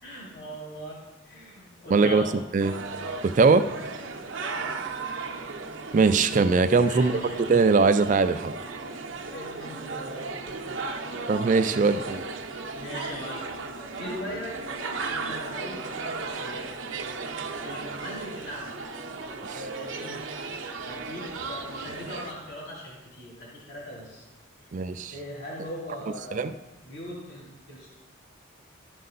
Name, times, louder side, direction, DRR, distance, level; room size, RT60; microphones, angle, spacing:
voice 1, 0.0-2.4 4.4-4.8 6.9-7.4 9.3-11.2 12.0-12.1 12.7-13.6 13.9-14.6 14.9-16.7 17.6-18.8 19.5-20.2 20.8-24.2 24.6-26.5 26.8-27.9, equal, 55° left, -5 dB, 2.8 m, -40 dB
voice 2, 1.9-2.2 2.5-2.7 3.2-3.6 5.9-7.2 7.5-8.5 11.3-12.2 19.4-19.6 24.7-25.1 26.3-26.5, right 4 dB, 40° right, 11 dB, 0.4 m, -21 dB
sound 1, 2.6-22.3, right 4 dB, 70° right, 0.7 m, -36 dB
12.0 x 5.4 x 3.9 m, 1.0 s
head